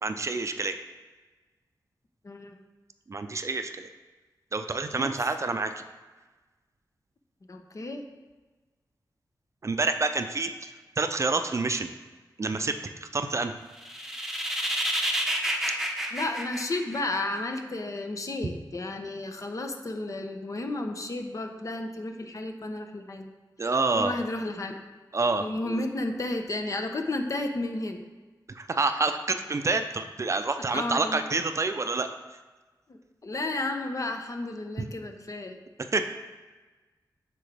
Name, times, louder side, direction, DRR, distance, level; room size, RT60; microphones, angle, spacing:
voice 1, 0.0-0.8 3.1-3.9 4.5-5.7 9.6-11.9 12.4-13.5 23.6-24.1 25.1-25.8 28.5-32.4 35.9-36.0, right 3 dB, 40° right, 8 dB, 0.5 m, -28 dB
voice 2, 2.2-2.6 4.9-5.1 7.5-8.0 16.1-23.3 24.0-24.8 25.4-28.0 30.7-31.2 32.9-35.6, left 2 dB, 45° left, 5 dB, 0.8 m, -32 dB
sound 1, 13.8-17.4, right 1 dB, 5° right, 0.8 m, -29 dB
8.5 x 6.1 x 3.4 m, 1.2 s
wide cardioid pair, 95°, 8 cm